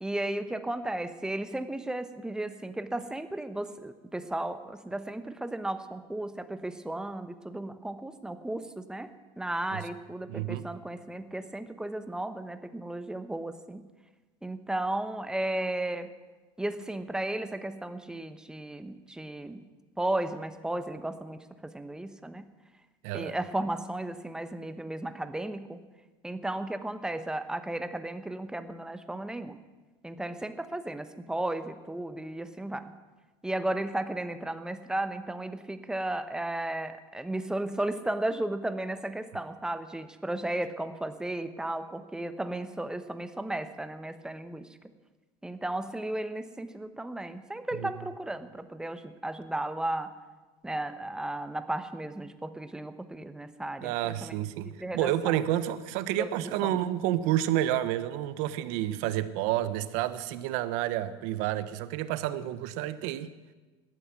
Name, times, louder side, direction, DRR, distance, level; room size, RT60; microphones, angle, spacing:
voice 1, 0.0-13.8 14.4-16.1 16.6-19.6 20.0-22.4 23.1-25.8 26.2-29.6 30.0-32.9 33.4-44.8 45.4-50.1 50.6-54.4 54.6-55.4 56.2-56.3 56.6-56.8, right 1 dB, 5° right, 11 dB, 0.9 m, -34 dB
voice 2, 10.3-10.6 23.0-23.4 47.8-47.9 53.8-63.3, right 13 dB, 70° right, 14 dB, 1.0 m, -30 dB
17.5 x 12.5 x 6.0 m, 1.3 s
supercardioid pair, 125°, 13 cm